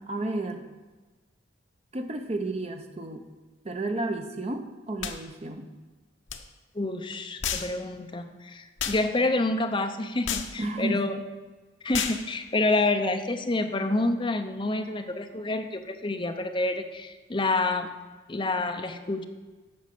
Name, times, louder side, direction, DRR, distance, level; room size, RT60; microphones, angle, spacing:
voice 1, 0.1-0.7 1.9-3.3 3.6-5.7 10.6-11.0, right 2 dB, 30° right, 5 dB, 0.7 m, -32 dB
sound 1, 5.0-5.2 6.3-6.4 7.4-7.7 8.8-9.0 10.3-10.5 11.9-12.2, left 8 dB, 70° left, 0.8 m, -30 dB
voice 2, 6.7-11.1 11.8-17.9 18.3-19.2, left 2 dB, 25° left, 6 dB, 0.6 m, -28 dB
8.6 x 5.4 x 7.6 m, 1.3 s
head